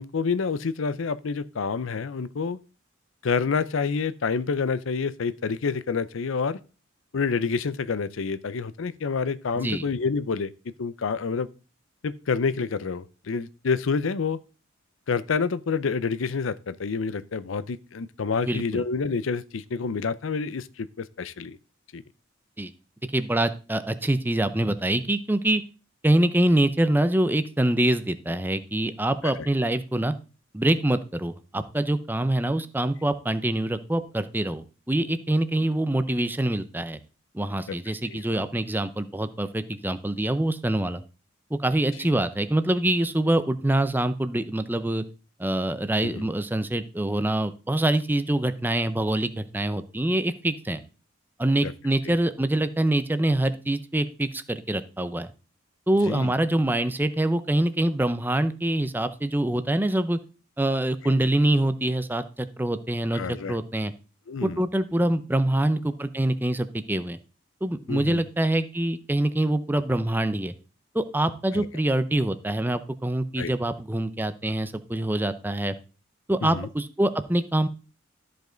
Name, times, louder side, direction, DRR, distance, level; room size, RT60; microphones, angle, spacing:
voice 1, 0.0-2.6 3.2-6.6 7.1-10.5 10.8-11.5 12.0-14.4 15.1-21.6 21.9-22.0 29.4-29.5 37.7-37.8 38.1-38.4 46.0-46.3 51.6-51.7 52.0-52.2 56.0-56.3 63.1-63.6 64.3-64.6 67.9-68.2 71.5-71.7 73.4-73.5 76.4-76.7, left 5 dB, 80° left, 0.5 m, -28 dB
voice 2, 18.5-18.8 22.6-22.7 23.1-25.6 26.0-30.1 30.5-37.0 37.3-41.0 41.5-45.0 45.4-50.8 51.4-55.3 55.9-60.2 60.6-63.9 64.4-67.2 67.6-70.5 70.9-75.8 76.3-77.7, right 1 dB, 10° right, 0.5 m, -25 dB
13.0 x 5.2 x 3.9 m
head